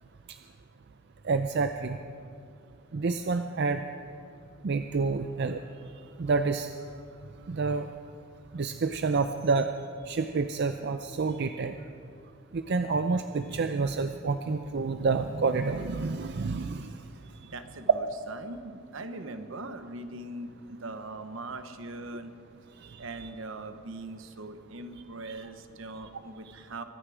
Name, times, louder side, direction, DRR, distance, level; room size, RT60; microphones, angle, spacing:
voice 1, 1.2-2.0 2.9-3.8 4.6-5.6 6.2-6.7 7.5-7.9 8.5-9.7 10.1-11.8 12.5-16.9 25.3-25.4, right 4 dB, 55° right, 8 dB, 0.5 m, -28 dB
voice 2, 17.5-22.3 23.0-26.8, right 2 dB, 70° right, 9 dB, 1.0 m, -41 dB
23.5 x 10.0 x 5.0 m, 2.4 s
head